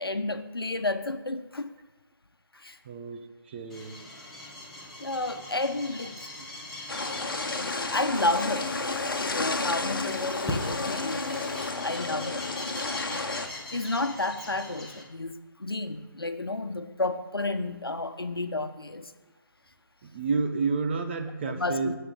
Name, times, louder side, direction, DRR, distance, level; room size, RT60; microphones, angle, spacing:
voice 1, 0.0-1.7 2.5-2.8 5.0-6.3 7.5-11.4 11.8-12.5 13.0-13.2 13.7-15.3 15.6-19.1 21.5-21.9, left 2 dB, 85° left, 8 dB, 1.1 m, -31 dB
voice 2, 2.8-4.1 20.0-21.9, right 4 dB, 25° right, 5 dB, 1.0 m, -30 dB
sound 1, 3.7-15.0, left 1 dB, 5° left, 1.4 m, -40 dB
sound 2, 6.9-13.5, left 3 dB, 65° left, 1.3 m, -32 dB
sound 3, 8.1-12.2, left 3 dB, 30° left, 1.8 m, -37 dB
19.0 x 6.7 x 4.0 m, 1.2 s
figure-of-eight pair, 155°, 12 cm